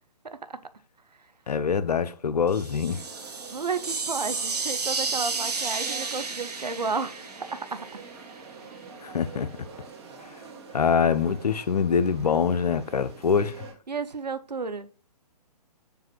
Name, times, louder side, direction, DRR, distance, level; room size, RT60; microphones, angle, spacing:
voice 1, 0.2-0.6 3.5-7.2 7.5-8.0 13.9-14.9, right 4 dB, 90° right, 0.5 m, -32 dB
voice 2, 1.5-3.0 9.0-9.5 10.7-13.7, left 6 dB, 75° left, 0.5 m, -24 dB
sound 1, 2.5-8.4, right 4 dB, 75° right, 0.9 m, -32 dB
sound 2, 2.9-13.7, right 4 dB, 40° right, 1.1 m, -46 dB
6.8 x 2.5 x 3.0 m
figure-of-eight pair, 135°, 21 cm